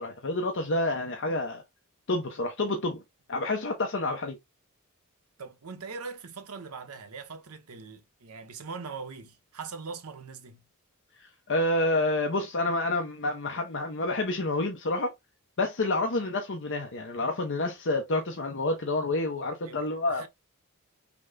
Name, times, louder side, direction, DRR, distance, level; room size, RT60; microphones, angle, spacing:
voice 1, 0.0-1.6 2.1-3.0 3.3-4.4 11.2-15.1 15.6-20.3, left 2 dB, 55° left, 0.8 m, -28 dB
voice 2, 5.4-10.6 19.6-20.3, right 5 dB, 90° right, 1.0 m, -41 dB
6.0 x 2.2 x 3.8 m
head